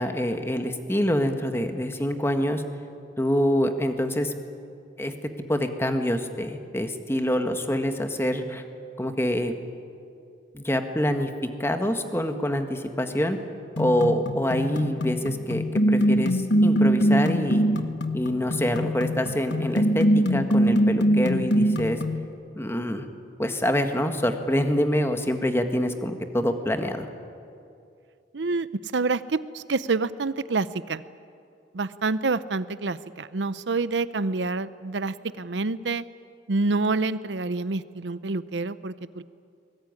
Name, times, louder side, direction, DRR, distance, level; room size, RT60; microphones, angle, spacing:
voice 1, 0.0-2.6 3.2-4.3 5.0-8.6 9.0-9.5 10.5-11.3 11.6-13.4 13.8-17.6 18.1-22.0 22.5-23.1 23.4-27.1, equal, 15° left, 6 dB, 1.6 m, -26 dB
sound 1, 13.8-22.2, equal, 75° left, 1.4 m, -23 dB
voice 2, 28.3-31.0 31.7-36.0 36.5-39.2, right 3 dB, 75° right, 15 dB, 0.7 m, -27 dB
24.0 x 20.5 x 9.7 m, 2.5 s
head